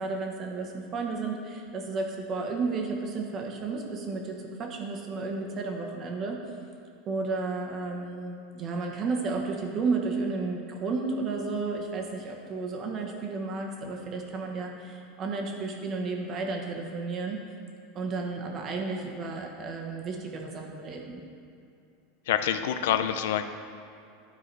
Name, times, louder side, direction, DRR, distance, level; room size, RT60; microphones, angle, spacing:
voice 1, 0.0-6.4 7.1-17.4 17.9-21.2, right 4 dB, 30° right, 1 dB, 1.1 m, -32 dB
voice 2, 22.3-23.4, left 10 dB, 80° left, 10 dB, 0.5 m, -26 dB
12.0 x 4.7 x 4.6 m, 2.6 s
supercardioid pair, 150°, 0 cm